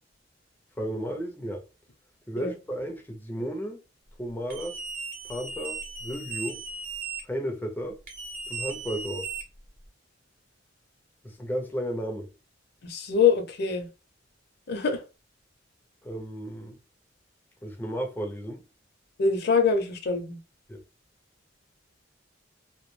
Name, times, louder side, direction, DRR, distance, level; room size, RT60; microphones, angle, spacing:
voice 1, 0.8-1.6 2.3-3.8 4.2-4.8 5.3-6.6 7.2-8.0 8.5-9.3 11.2-12.3 16.0-16.8 17.6-18.6 20.7-20.8, equal, 10° left, 0.4 m, -33 dB
sound 1, 4.5-7.2 8.1-9.9, right 4 dB, 45° right, 0.8 m, -37 dB
voice 2, 12.8-13.9 14.7-15.0 19.2-20.4, left 5 dB, 60° left, 0.6 m, -24 dB
2.2 x 2.1 x 3.1 m
head